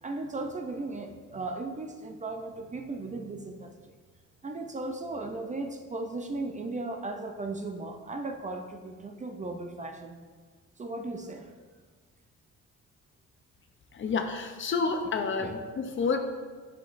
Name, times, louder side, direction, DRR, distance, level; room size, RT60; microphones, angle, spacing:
voice 1, 0.0-3.7 4.4-10.2 10.8-11.5 15.4-15.5, right 2 dB, 25° right, 5 dB, 0.5 m, -36 dB
voice 2, 13.9-16.2, left 4 dB, 40° left, 6 dB, 0.6 m, -29 dB
6.7 x 5.9 x 2.5 m, 1.5 s
cardioid pair, 90°, 30 cm